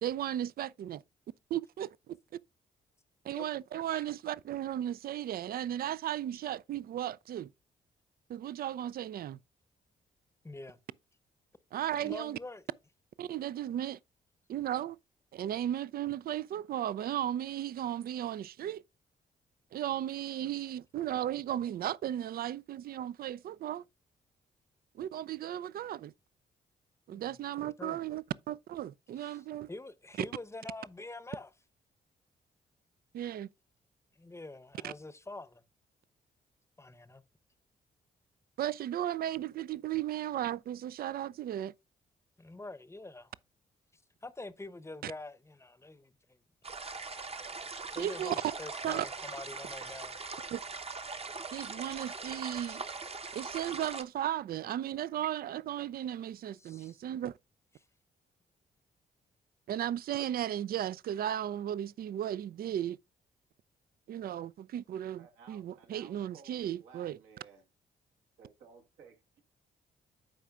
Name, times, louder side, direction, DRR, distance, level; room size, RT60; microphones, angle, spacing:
voice 1, 0.0-1.0 1.5-2.2 3.2-7.5 8.3-9.4 11.7-12.4 13.2-14.0 14.5-15.0 15.3-18.8 19.7-23.9 24.9-26.1 27.1-29.7 33.1-33.5 34.8-34.9 38.6-41.7 45.0-45.1 48.0-48.4 48.8-49.0 50.5-50.6 51.5-52.8 53.3-57.3 59.7-63.0 64.1-67.2, right 11 dB, 50° right, 0.4 m, -35 dB
voice 2, 10.4-10.8 12.0-12.6 27.1-27.3 27.6-28.0 29.2-29.4 29.7-31.5 34.2-35.6 36.8-37.2 42.4-43.3 44.2-46.4 47.9-50.2 56.6-57.0, left 2 dB, 15° left, 0.8 m, -45 dB
sound 1, 46.6-54.0, right 4 dB, 30° right, 0.9 m, -41 dB
voice 3, 65.2-67.6 68.4-69.4, right 6 dB, 75° right, 1.6 m, -57 dB
14.0 x 4.9 x 2.4 m
hypercardioid pair, 40°, 20 cm